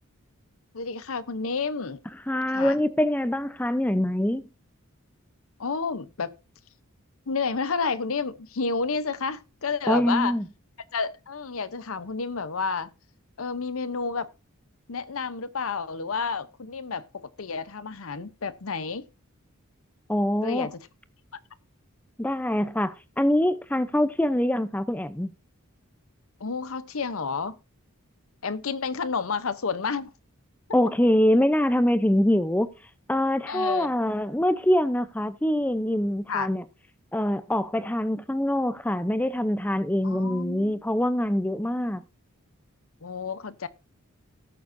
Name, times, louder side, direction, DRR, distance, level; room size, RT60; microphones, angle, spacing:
voice 1, 0.7-2.0 2.5-2.8 5.6-6.3 7.3-10.4 10.9-12.9 13.4-14.3 14.9-19.0 20.4-20.9 26.4-27.6 28.4-30.1 33.5-33.9 36.3-36.5 40.0-40.8 43.0-43.7, left 5 dB, 70° left, 0.8 m, -30 dB
voice 2, 2.3-4.5 9.9-10.5 20.1-20.7 22.2-25.3 30.7-32.7 33.1-36.6 37.1-42.0, left 1 dB, 5° left, 0.6 m, -24 dB
18.0 x 7.0 x 2.6 m
head